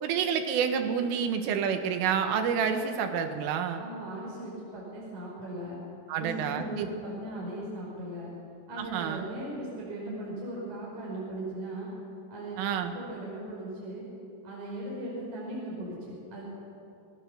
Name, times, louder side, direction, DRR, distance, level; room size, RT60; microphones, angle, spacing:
voice 1, 0.0-3.8 6.1-6.9 8.8-9.2 12.6-12.9, right 7 dB, 80° right, 6 dB, 4.0 m, -28 dB
voice 2, 3.8-5.8 6.2-8.3 8.7-11.9 12.3-12.6 12.9-14.1 14.4-16.5, right 1 dB, 40° right, -4 dB, 6.3 m, -38 dB
28.0 x 20.5 x 7.0 m, 2.6 s
omnidirectional pair, 5.7 m